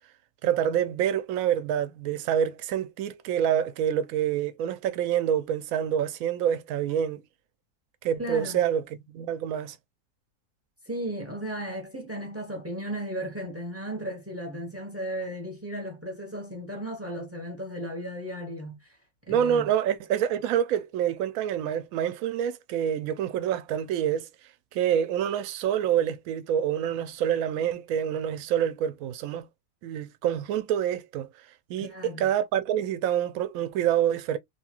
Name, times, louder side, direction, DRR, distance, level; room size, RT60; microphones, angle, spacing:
voice 1, 0.4-7.2 8.0-9.8 19.3-24.3 24.7-29.5 29.8-31.3 31.7-34.4, right 9 dB, 70° right, 0.9 m, -27 dB
voice 2, 8.2-8.6 10.8-19.0 19.3-19.7 31.8-32.3, equal, 15° right, 0.7 m, -35 dB
2.9 x 2.3 x 2.8 m
omnidirectional pair, 1.6 m